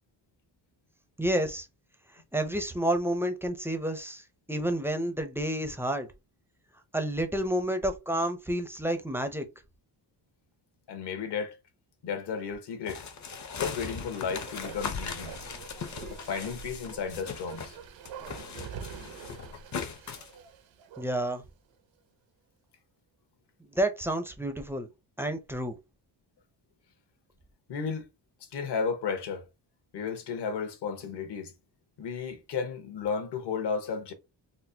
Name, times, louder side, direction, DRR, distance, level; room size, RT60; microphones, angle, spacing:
voice 1, 1.2-1.7 2.3-4.2 4.5-6.1 6.9-9.4 21.0-21.4 23.8-24.9 25.2-25.8, right 1 dB, 5° right, 0.4 m, -29 dB
voice 2, 10.9-11.6 12.0-13.0 13.6-15.3 16.1-17.8 27.7-28.1 28.5-29.4 29.9-31.5 32.0-34.1, left 5 dB, 65° left, 1.0 m, -33 dB
sound 1, 12.9-17.8 18.0-20.3, left 6 dB, 40° left, 0.6 m, -39 dB
Bark, 13.9-21.4 21.7-21.8, right 6 dB, 85° right, 0.7 m, -45 dB
4.1 x 2.1 x 2.7 m
cardioid pair, 115°, 44 cm